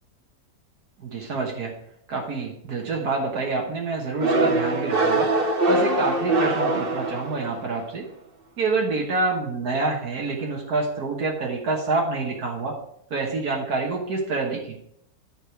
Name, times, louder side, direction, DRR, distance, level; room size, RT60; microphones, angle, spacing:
voice 1, 1.0-1.7 2.1-8.1 8.6-12.8 13.1-14.8, right 3 dB, 80° right, -1 dB, 1.8 m, -27 dB
sound 1, 4.2-7.7, right 2 dB, 45° right, 1.1 m, -22 dB
10.0 x 4.9 x 4.9 m, 0.72 s
omnidirectional pair, 1.6 m